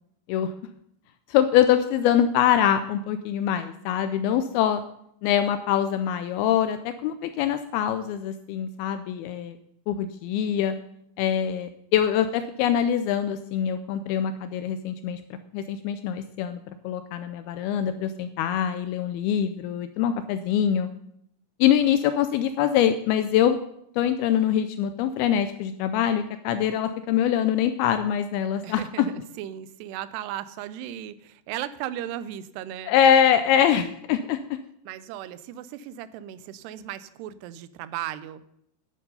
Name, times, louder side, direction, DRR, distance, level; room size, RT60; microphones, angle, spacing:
voice 1, 1.3-4.8 5.2-9.6 9.9-10.8 11.2-15.2 15.5-20.9 21.6-23.6 24.0-29.1 32.9-34.6, left 9 dB, 80° left, 10 dB, 2.3 m, -24 dB
voice 2, 28.6-32.9 34.9-38.4, right 12 dB, 90° right, 15 dB, 2.7 m, -36 dB
10.5 x 9.4 x 5.4 m, 0.73 s
omnidirectional pair, 4.7 m